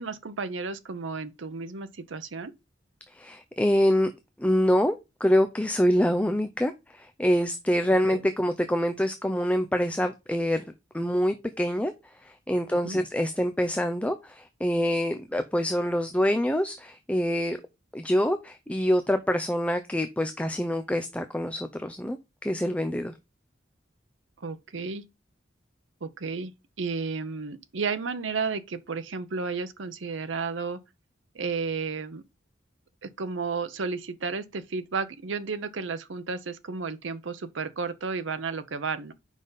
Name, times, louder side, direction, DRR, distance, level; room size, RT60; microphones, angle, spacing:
voice 1, 0.0-2.5 8.1-8.3 12.8-13.0 24.4-25.0 26.0-26.5 26.8-30.8 31.3-32.2 33.0-39.1, right 4 dB, 80° right, 0.7 m, -32 dB
voice 2, 3.1-4.1 4.4-5.0 5.2-10.6 10.9-11.9 12.2-17.6 17.9-23.1, equal, 5° left, 0.5 m, -25 dB
7.4 x 5.3 x 3.9 m
head